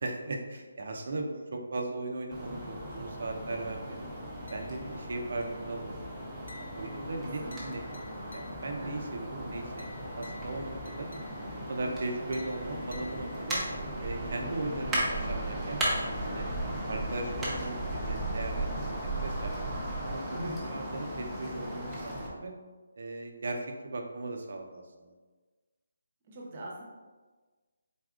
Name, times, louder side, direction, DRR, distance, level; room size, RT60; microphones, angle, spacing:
voice 1, 0.0-4.1 4.5-6.0 6.7-7.8 8.3-11.1 11.4-13.6 14.0-16.5 16.9-19.7 20.0-22.5 22.9-25.1, right 2 dB, 60° right, 2 dB, 0.6 m, -38 dB
sound 1, 2.3-22.3, right 1 dB, 5° right, 0.7 m, -36 dB
sound 2, 4.5-5.0 5.4-5.8 6.5-8.9 9.8-11.7 12.3-13.8, left 3 dB, 85° left, 0.7 m, -52 dB
voice 2, 7.2-7.5 8.8-9.1 20.3-20.6 26.3-26.8, equal, 30° right, -3 dB, 0.9 m, -42 dB
4.1 x 3.6 x 2.4 m, 1.3 s
figure-of-eight pair, 160°, 0 cm